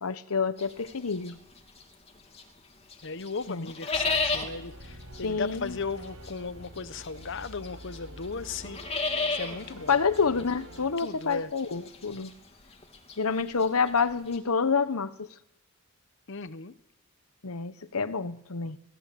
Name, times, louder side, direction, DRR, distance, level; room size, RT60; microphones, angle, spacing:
voice 1, 0.0-1.4 3.5-3.7 5.2-5.8 9.9-12.3 13.2-15.3 17.4-18.8, left 5 dB, 85° left, 1.0 m, -28 dB
sound 1, 0.6-2.6 2.9-14.4, left 3 dB, 30° left, 3.1 m, -34 dB
voice 2, 3.0-8.8 9.3-10.0 11.0-11.5 16.3-16.7, left 4 dB, 60° left, 0.9 m, -36 dB
sound 2, 3.9-10.9, equal, 80° right, 5.7 m, -46 dB
27.0 x 19.5 x 8.5 m
head